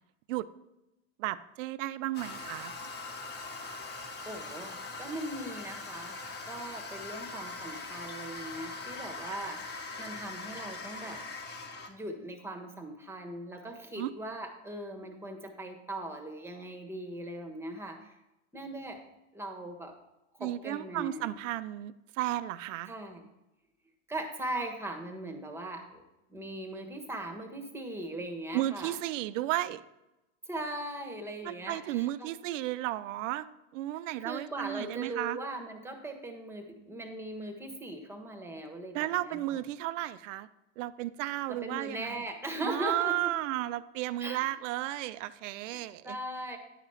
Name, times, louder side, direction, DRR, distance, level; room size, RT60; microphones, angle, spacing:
voice 1, 1.2-2.7 13.9-14.1 20.4-22.9 28.5-29.8 31.4-33.5 33.7-35.4 38.9-40.5 40.8-42.2 42.6-46.2, right 15 dB, 80° right, 15 dB, 0.6 m, -33 dB
Toilet flush, 2.1-11.9, left 3 dB, 25° left, 1.4 m, -41 dB
voice 2, 4.2-6.2 6.4-11.2 11.9-18.2 18.5-19.0 19.3-19.9 20.3-21.4 22.9-23.2 24.1-26.0 26.3-29.0 30.5-32.3 34.2-39.6 41.5-43.3 44.2-44.5 45.7-46.6, right 1 dB, 5° right, 4 dB, 1.2 m, -39 dB
9.9 x 5.0 x 5.6 m, 0.94 s
supercardioid pair, 120°, 37 cm